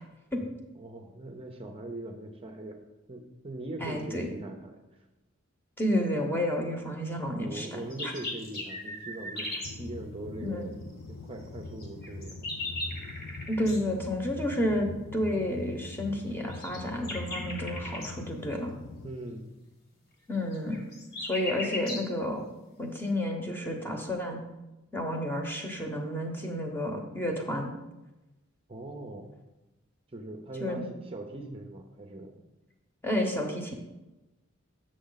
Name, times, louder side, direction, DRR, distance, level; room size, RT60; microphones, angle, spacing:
voice 1, 0.8-2.8 3.1-5.1 7.4-10.8 11.1-12.7 19.0-19.4 28.7-29.3 30.1-32.4, right 1 dB, 30° right, 3 dB, 0.7 m, -41 dB
voice 2, 3.8-4.3 5.8-8.1 10.4-10.7 13.5-18.7 20.3-20.8 21.2-22.4 22.8-24.4 24.9-27.7 30.6-30.9 33.0-33.7, left 1 dB, 10° left, 2 dB, 1.1 m, -31 dB
sound 1, 7.7-9.8 11.8-13.8 16.5-18.1 20.5-22.1, left 1 dB, 50° left, 1.7 m, -37 dB
sound 2, 9.6-19.1, left 3 dB, 70° left, 0.5 m, -42 dB
7.6 x 6.4 x 4.0 m, 1.0 s
head